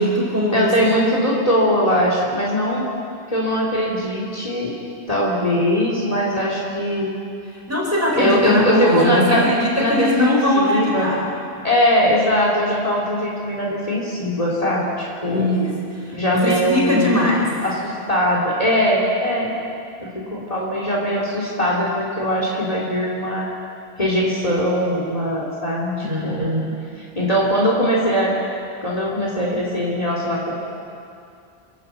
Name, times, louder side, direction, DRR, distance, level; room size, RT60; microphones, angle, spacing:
voice 1, 0.0-0.9 7.7-11.3 15.3-15.8 16.0-17.5 26.0-26.8, left 1 dB, 15° right, -4 dB, 4.8 m, -20 dB
voice 2, 0.5-2.8 3.3-4.7 5.1-7.1 8.2-9.4 9.8-11.1 11.6-15.5 16.1-17.2 17.6-19.5 20.0-23.5 24.0-26.5 27.1-28.4 28.8-30.5, equal, 35° left, -3 dB, 3.0 m, -21 dB
27.0 x 11.5 x 8.2 m, 2.5 s
omnidirectional pair, 1.1 m